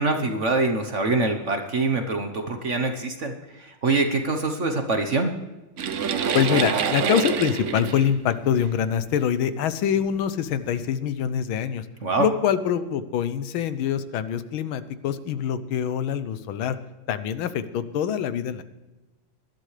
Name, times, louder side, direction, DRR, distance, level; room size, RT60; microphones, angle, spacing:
voice 1, 0.0-3.3 3.8-5.4 12.0-12.3, right 3 dB, 45° right, 5 dB, 1.1 m, -24 dB
sound 1, 5.8-9.1 9.9-10.1 10.7-10.8, right 7 dB, 65° right, 0.7 m, -26 dB
voice 2, 6.3-11.8 12.2-16.8 17.1-18.6, left 8 dB, 80° left, 13 dB, 1.6 m, -25 dB
20.0 x 12.0 x 3.3 m, 1.1 s
omnidirectional pair, 2.2 m